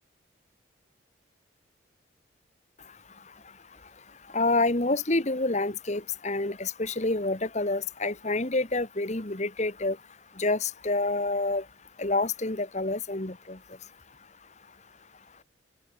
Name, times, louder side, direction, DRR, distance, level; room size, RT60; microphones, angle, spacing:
voice 1, 4.3-10.0 10.4-11.6 12.0-13.6, left 2 dB, 40° left, 1.7 m, -28 dB
open air
head